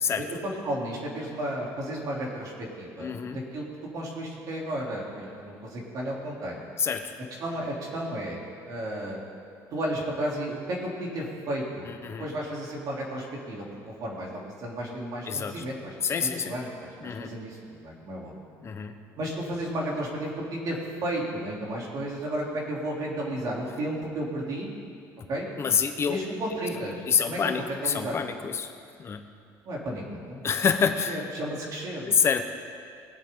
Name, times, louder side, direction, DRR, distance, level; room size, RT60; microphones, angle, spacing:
voice 1, 0.2-3.6 3.9-6.6 7.4-8.4 8.7-9.2 9.7-11.9 12.2-15.9 16.2-18.3 19.2-24.7 25.3-25.5 26.1-28.2 29.6-30.4 31.1-32.2, right 1 dB, 50° right, -3 dB, 3.3 m, -33 dB
voice 2, 3.0-3.4 6.8-7.1 11.9-12.3 15.3-15.6 16.0-16.6 17.0-17.3 18.6-19.0 25.6-26.2 27.1-28.7 29.0-29.2 30.4-31.2 32.1-32.5, left 6 dB, 35° left, 7 dB, 1.0 m, -27 dB
21.0 x 8.3 x 3.8 m, 2.4 s
cardioid pair, 120°, 8 cm